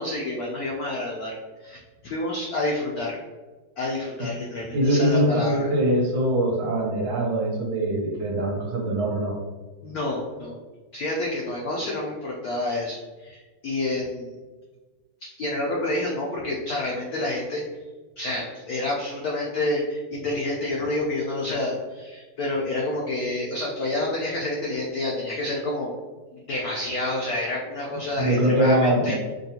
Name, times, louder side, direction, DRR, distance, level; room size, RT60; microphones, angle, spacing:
voice 1, 0.0-1.8 2.0-3.2 3.8-5.7 9.8-10.6 10.9-14.4 15.2-17.6 18.2-25.9 26.3-29.1, left 2 dB, 80° left, -2 dB, 0.8 m, -28 dB
voice 2, 4.7-9.4 28.2-29.2, right 1 dB, 75° right, -1 dB, 1.6 m, -22 dB
5.1 x 2.3 x 2.8 m, 1.3 s
omnidirectional pair, 2.2 m